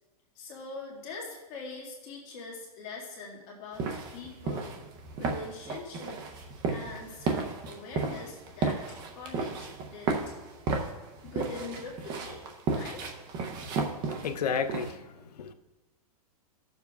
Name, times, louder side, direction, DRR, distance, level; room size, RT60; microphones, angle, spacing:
voice 1, 0.4-4.8 5.2-6.2 6.7-10.3 11.2-13.1, left 3 dB, 30° left, -3 dB, 1.9 m, -43 dB
sound 1, 3.7-15.0, right 4 dB, 20° right, 0.6 m, -33 dB
voice 2, 14.1-15.5, left 6 dB, 90° left, 9 dB, 0.7 m, -32 dB
16.5 x 7.0 x 2.3 m, 1.1 s
hypercardioid pair, 160°, 20 cm